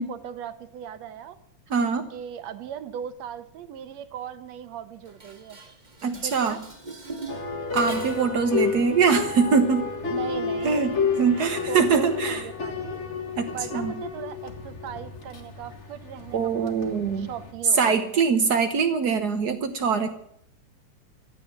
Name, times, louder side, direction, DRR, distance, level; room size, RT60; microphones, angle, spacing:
voice 1, 0.0-1.4 2.1-5.6 6.0-6.6 10.1-13.0 13.5-16.7 17.2-18.2, right 9 dB, 70° right, 11 dB, 2.0 m, -38 dB
voice 2, 1.7-2.1 6.0-6.6 7.7-9.9 10.6-10.9 11.2-12.4 13.4-13.5 13.7-13.9 16.3-17.3 17.7-20.1, right 5 dB, 85° right, 7 dB, 0.8 m, -23 dB
Dishes pots and pans, 5.0-8.4, right 3 dB, 20° right, 1.3 m, -41 dB
sound 1, 7.3-17.5, left 5 dB, 30° left, 1.3 m, -31 dB
15.0 x 10.0 x 8.7 m, 0.72 s
omnidirectional pair, 3.5 m